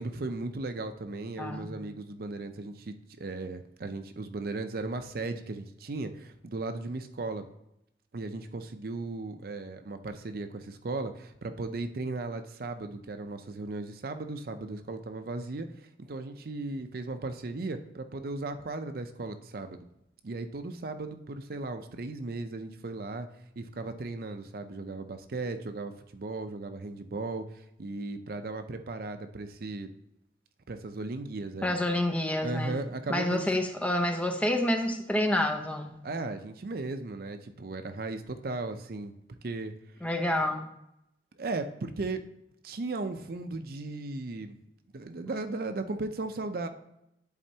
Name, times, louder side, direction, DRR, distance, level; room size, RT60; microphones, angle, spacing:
voice 1, 0.0-7.5 8.1-15.7 16.0-19.8 20.2-23.3 23.6-29.9 30.7-31.7 32.4-33.5 36.0-39.1 39.4-39.7 41.4-42.2 42.6-44.6 44.9-46.7, right 3 dB, 55° right, 8 dB, 0.5 m, -36 dB
voice 2, 1.4-1.7 31.6-32.8 33.1-36.1 40.0-40.7, left 1 dB, 10° left, 3 dB, 0.6 m, -28 dB
10.5 x 4.4 x 2.8 m, 0.81 s
head